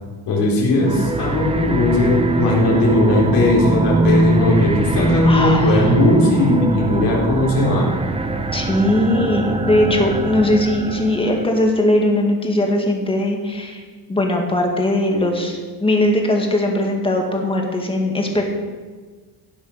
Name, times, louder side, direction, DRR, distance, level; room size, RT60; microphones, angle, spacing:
voice 1, 0.3-7.9, left 2 dB, 80° left, -5 dB, 4.3 m, -17 dB
sound 1, 0.8-11.5, right 2 dB, 15° right, 0.7 m, -21 dB
voice 2, 5.3-5.8 8.5-13.8 14.1-18.4, left 1 dB, 15° left, 1 dB, 2.0 m, -19 dB
17.0 x 7.3 x 6.5 m, 1.4 s
cardioid pair, 175°, 41 cm